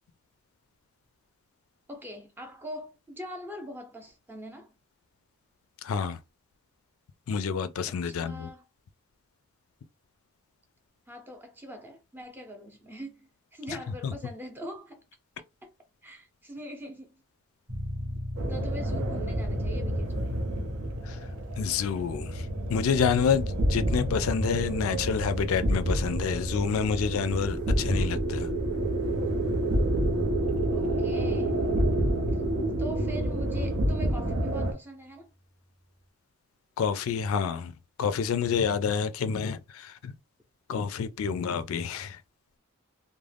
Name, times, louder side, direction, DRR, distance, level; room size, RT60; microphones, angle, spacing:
voice 1, 1.9-4.7 7.9-8.7 11.1-15.0 15.6-15.7 16.0-17.2 18.5-20.4 30.7-31.5 32.8-35.3, equal, 10° right, 0.6 m, -42 dB
voice 2, 5.8-6.2 7.3-8.5 13.7-13.8 14.0-14.1 21.0-21.2 21.6-28.5 36.8-37.7 38.0-40.1 40.7-42.2, left 6 dB, 75° left, 0.3 m, -28 dB
sound 1, 17.7-32.1, left 1 dB, 35° right, 0.8 m, -42 dB
sound 2, 18.4-34.7, right 1 dB, 80° right, 0.7 m, -28 dB
2.4 x 2.1 x 3.3 m
head